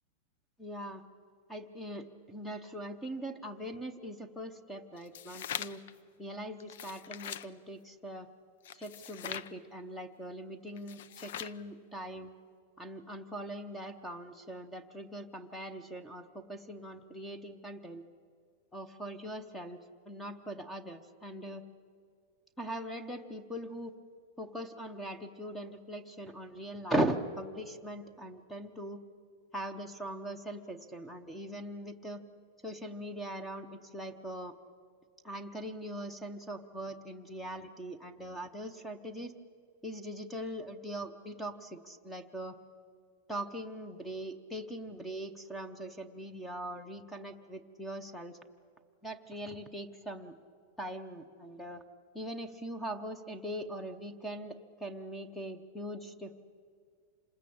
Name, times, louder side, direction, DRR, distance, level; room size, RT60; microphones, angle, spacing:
voice 1, 0.6-1.0 1.5-5.8 6.2-8.3 8.7-12.3 12.8-18.0 18.7-21.6 22.6-23.9 24.4-29.0 29.5-32.2 32.6-34.5 35.2-39.3 39.8-42.6 43.3-48.4 49.0-50.3 50.8-51.8 52.1-56.4, right 1 dB, 5° left, 11 dB, 0.8 m, -40 dB
sound 1, 5.0-5.9 6.6-7.5 8.6-9.5 10.8-11.6, left 10 dB, 60° left, 0.6 m, -42 dB
27.0 x 20.0 x 8.6 m, 2.2 s
supercardioid pair, 180°, 0 cm